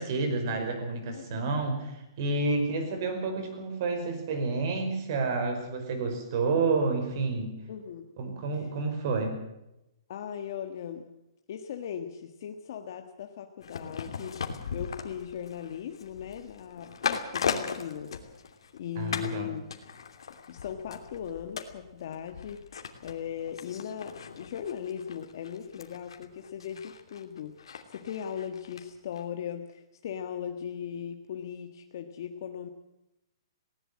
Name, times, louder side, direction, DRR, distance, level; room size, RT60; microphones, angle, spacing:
voice 1, 0.0-7.5 8.2-9.4 19.0-19.5, right 3 dB, 40° right, 7 dB, 5.1 m, -29 dB
voice 2, 1.1-1.7 7.7-8.1 8.5-8.7 10.1-11.1 11.5-18.2 18.7-19.6 20.5-32.7, left 8 dB, 45° left, 6 dB, 1.5 m, -38 dB
sound 1, 13.6-18.8 19.1-19.4 19.7-28.8 29.1-29.2, left 6 dB, 85° left, 2.8 m, -38 dB
19.5 x 18.0 x 7.6 m, 0.88 s
hypercardioid pair, 170°, 3 cm